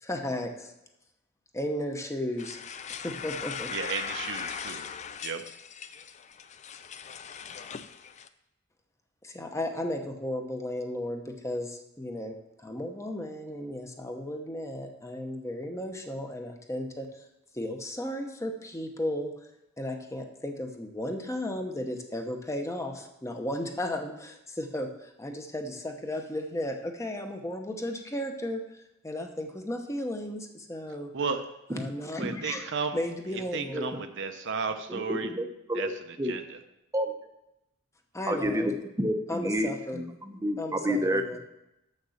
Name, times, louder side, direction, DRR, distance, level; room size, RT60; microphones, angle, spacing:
voice 1, 0.0-0.7 1.5-2.6 3.0-3.7 9.2-17.3 17.5-19.3 19.8-31.1 31.7-32.6 32.9-34.0 38.1-38.7 39.3-40.0 40.6-41.4, left 1 dB, 15° left, 4 dB, 0.8 m, -34 dB
sound 1, 2.4-8.3, left 7 dB, 35° left, 0.4 m, -39 dB
voice 2, 3.7-4.9 5.2-5.4 31.1-31.4 32.2-33.0 33.3-35.3 35.7-35.9 36.2-36.6, right 5 dB, 60° right, 7 dB, 0.7 m, -33 dB
voice 3, 33.7-34.0 34.9-35.9 36.2-36.3 36.9-37.3 38.3-38.7 39.0-41.4, equal, 15° right, 6 dB, 0.7 m, -30 dB
6.9 x 6.5 x 6.4 m, 0.86 s
head